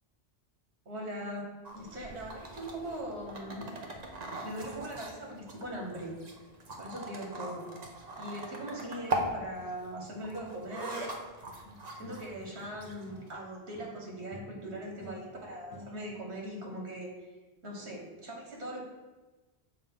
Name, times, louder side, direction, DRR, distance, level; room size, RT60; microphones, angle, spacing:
voice 1, 0.8-3.7 4.4-6.1 6.8-7.6 8.2-11.1 11.5-11.6 11.9-17.1 17.6-18.8, right 1 dB, 85° right, -1 dB, 1.7 m, -40 dB
sound 1, 1.6-13.3, right 1 dB, 45° right, 0.8 m, -41 dB
sound 2, 11.6-13.4 13.7-16.3, equal, 85° left, 1.3 m, -50 dB
6.7 x 2.7 x 5.6 m, 1.2 s
omnidirectional pair, 1.1 m